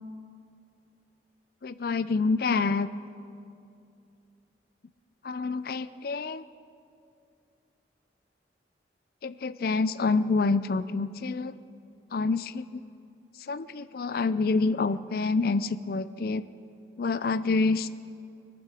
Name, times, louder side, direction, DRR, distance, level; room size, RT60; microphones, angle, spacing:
voice 1, 1.6-2.9 5.2-6.4 9.2-11.5 12.1-12.8 13.5-16.5 17.0-17.9, left 4 dB, 55° left, 14 dB, 0.4 m, -27 dB
22.0 x 12.5 x 4.9 m, 2.5 s
head